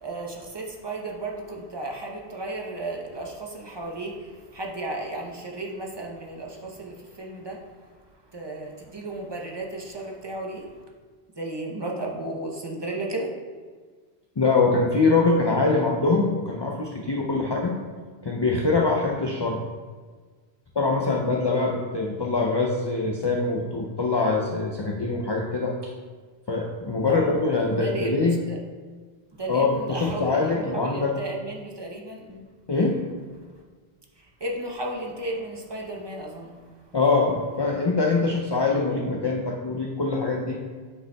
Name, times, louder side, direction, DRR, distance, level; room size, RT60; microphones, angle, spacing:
voice 1, 0.0-7.6 8.3-10.7 11.4-13.3 27.1-27.3 27.8-28.6 29.3-32.5 34.4-36.6, right 2 dB, 25° right, -1 dB, 0.7 m, -34 dB
voice 2, 14.4-17.7 18.2-19.6 20.8-25.9 26.5-28.4 29.5-31.2 32.7-33.0 36.9-40.6, left 3 dB, 40° left, -1 dB, 0.3 m, -23 dB
8.5 x 5.1 x 2.3 m, 1.5 s
omnidirectional pair, 1.1 m